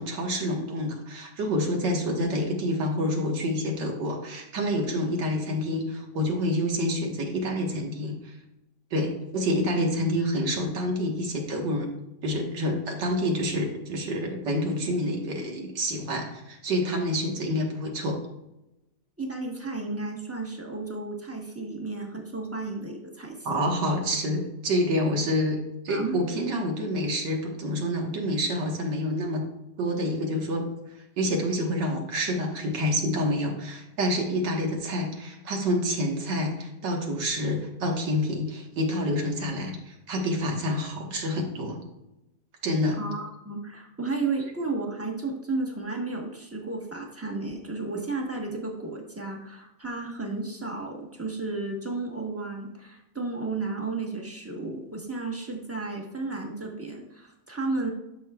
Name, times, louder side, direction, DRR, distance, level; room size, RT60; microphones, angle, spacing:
voice 1, 0.0-8.3 8.9-11.9 12.2-18.2 23.5-29.5 29.8-30.7 31.2-41.8 42.6-43.0, equal, 85° right, 1 dB, 2.1 m, -28 dB
voice 2, 19.2-23.6 25.9-26.2 43.0-57.9, right 3 dB, 10° right, 0 dB, 1.0 m, -33 dB
12.0 x 6.1 x 2.4 m, 0.92 s
omnidirectional pair, 1.8 m